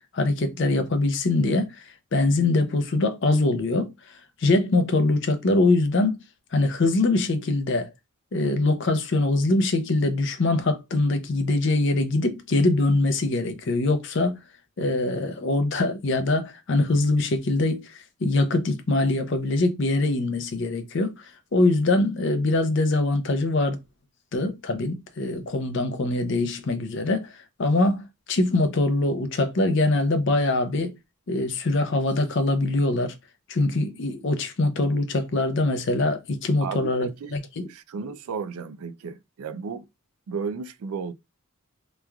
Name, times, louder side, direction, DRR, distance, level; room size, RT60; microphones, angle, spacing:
voice 1, 0.1-1.8 2.1-6.2 6.5-7.9 8.3-14.4 14.8-23.8 24.3-31.0 31.3-33.1 33.5-37.7, left 2 dB, 55° left, 0.5 m, -23 dB
voice 2, 36.6-37.4 37.7-39.9 40.3-41.1, right 5 dB, 80° right, 0.4 m, -34 dB
3.0 x 2.3 x 2.3 m
head